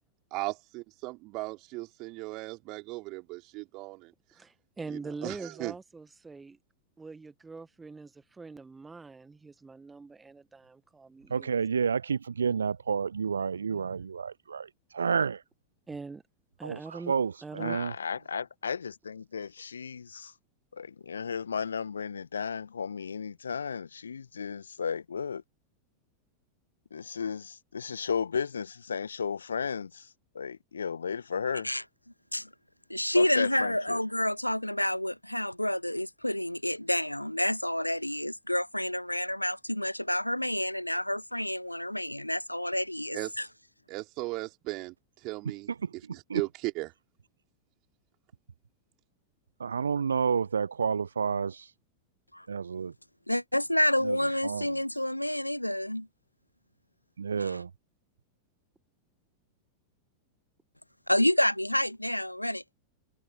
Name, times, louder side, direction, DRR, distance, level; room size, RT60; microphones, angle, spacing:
voice 1, 0.3-4.1 4.9-5.7 43.1-43.3 43.9-44.9 45.2-46.9, right 23 dB, 40° right, 5.0 m, -37 dB
voice 2, 4.3-6.6 7.0-11.6 13.7-14.0 15.9-16.2 16.6-17.1 17.4-17.8, right 4 dB, 10° right, 1.9 m, -43 dB
voice 3, 11.3-14.7 14.9-15.4 16.6-17.9 45.8-45.9 46.3-46.4 49.6-51.7 52.5-52.9 54.0-54.2 54.4-54.7 57.2-57.7, right 6 dB, 70° right, 0.6 m, -30 dB
voice 4, 17.6-20.3 20.7-25.4 26.9-30.1 30.3-31.7 33.1-34.0, left 6 dB, 70° left, 2.0 m, -34 dB
voice 5, 32.9-43.4 52.3-52.5 53.3-56.1 57.3-57.6 61.1-62.6, left 1 dB, 90° left, 0.6 m, -29 dB
figure-of-eight pair, 90°, 0 cm